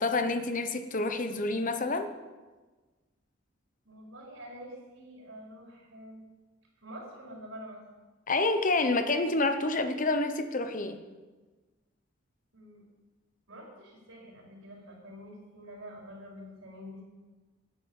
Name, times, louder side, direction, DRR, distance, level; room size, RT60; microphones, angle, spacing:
voice 1, 0.0-2.1 8.3-11.0, left 2 dB, 40° left, 9 dB, 1.0 m, -28 dB
voice 2, 3.8-6.2 6.8-7.8 12.5-12.8 13.5-17.0, equal, 85° right, -2 dB, 4.5 m, -47 dB
12.0 x 9.5 x 7.1 m, 1.3 s
head